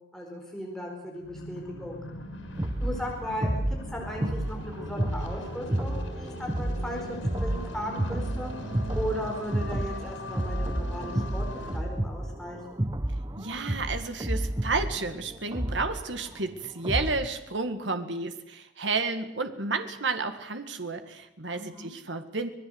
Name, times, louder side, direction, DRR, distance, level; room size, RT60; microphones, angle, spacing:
voice 1, 0.1-2.0 2.8-3.5 3.9-8.5 8.9-11.5 11.7-12.6 21.5-21.9, equal, 5° left, -1 dB, 4.6 m, -36 dB
sound 1, 1.0-11.8, equal, 90° left, 6.9 m, -40 dB
sound 2, 2.6-17.4, right 1 dB, 20° right, 1.0 m, -31 dB
voice 2, 13.4-22.5, right 3 dB, 70° right, 8 dB, 2.0 m, -31 dB
26.0 x 19.0 x 8.1 m, 0.84 s
head